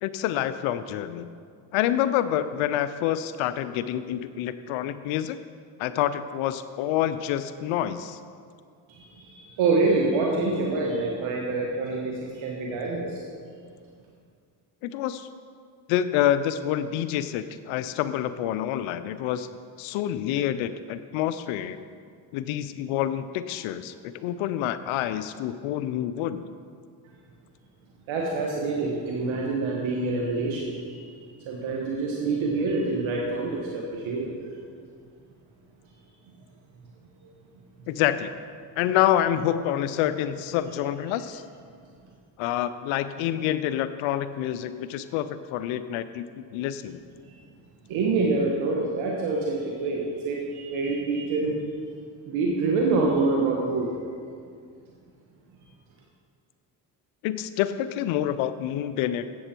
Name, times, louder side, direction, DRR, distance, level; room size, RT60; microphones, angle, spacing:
voice 1, 0.0-1.3 1.7-5.4 5.8-8.2 14.8-15.3 15.9-19.5 19.8-21.8 22.3-23.9 24.2-26.4 37.9-38.3 38.8-41.4 42.4-47.0 57.2-59.3, left 11 dB, 90° left, 12 dB, 0.6 m, -27 dB
voice 2, 8.9-13.2 28.1-34.3 47.9-51.5 52.2-53.9, right 3 dB, 75° right, -2 dB, 1.6 m, -26 dB
13.5 x 8.5 x 4.5 m, 2.2 s
supercardioid pair, 70°, 47 cm